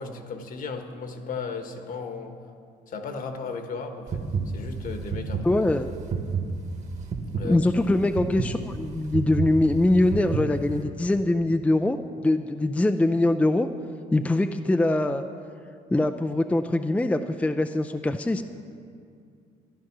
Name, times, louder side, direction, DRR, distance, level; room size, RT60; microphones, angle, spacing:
voice 1, 0.0-2.3 2.9-4.2 4.5-5.6 7.4-7.6, left 4 dB, 55° left, 6 dB, 1.4 m, -35 dB
sound 1, 4.1-10.8, right 5 dB, 40° right, 1.6 m, -30 dB
voice 2, 5.4-5.9 7.4-12.0 12.2-13.7 14.1-15.2 15.9-18.4, left 2 dB, 10° left, 7 dB, 0.4 m, -23 dB
13.5 x 11.0 x 6.0 m, 2.3 s
cardioid pair, 110°, 17 cm